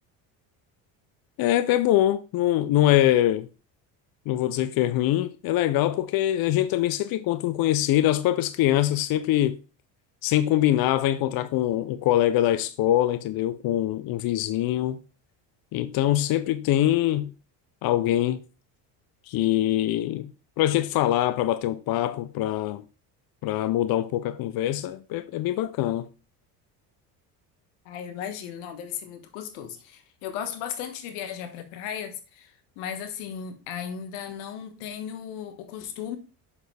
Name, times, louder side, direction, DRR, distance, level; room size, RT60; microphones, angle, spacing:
voice 1, 1.4-3.5 4.3-9.6 10.2-15.0 15.7-17.3 17.8-18.4 19.3-20.3 20.6-22.8 23.4-26.1, left 13 dB, 55° left, 0.6 m, -23 dB
voice 2, 27.8-36.2, left 8 dB, 85° left, 1.5 m, -36 dB
7.1 x 6.5 x 3.3 m
cardioid pair, 105°, 43 cm